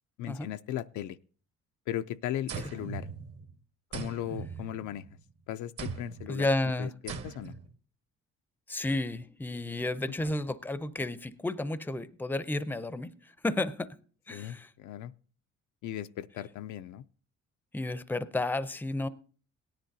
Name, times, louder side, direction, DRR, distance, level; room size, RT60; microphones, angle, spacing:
voice 1, 0.2-1.2 1.9-3.1 3.9-5.1 5.5-6.5 6.8-7.5 14.3-15.1 15.8-17.0, left 11 dB, 80° left, 0.5 m, -37 dB
sound 1, 2.5-3.5 3.9-5.2 5.8-6.3 7.1-7.7, right 5 dB, 50° right, 1.0 m, -40 dB
voice 2, 6.3-6.9 8.7-14.0 14.3-14.7 17.7-19.1, left 2 dB, 5° left, 0.5 m, -32 dB
17.0 x 10.5 x 2.7 m
cardioid pair, 90°, 30 cm